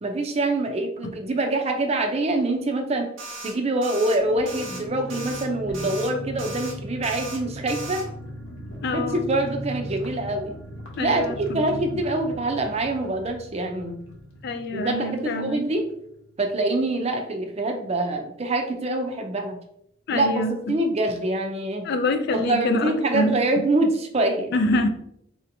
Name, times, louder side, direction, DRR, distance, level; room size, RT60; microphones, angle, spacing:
voice 1, 0.0-3.1 3.4-8.0 8.9-10.5 11.0-14.0 14.7-15.9 16.4-19.6 20.1-20.4 20.7-21.9 22.3-24.6, right 2 dB, 35° right, 4 dB, 0.5 m, -25 dB
sound 1, 3.2-3.5 3.8-4.2 4.5-4.8 5.1-5.5 5.7-6.1 6.4-6.7 7.0-7.4 7.7-8.0, right 2 dB, 85° right, 0.8 m, -37 dB
sound 2, 4.2-16.5 16.8-16.9 17.2-17.5, equal, 90° left, 1.0 m, -38 dB
voice 2, 8.8-9.3 11.0-11.3 14.4-15.6 20.1-20.7 21.8-23.4 24.5-24.9, left 2 dB, 55° left, 9 dB, 0.3 m, -25 dB
4.2 x 2.8 x 2.6 m, 0.75 s
head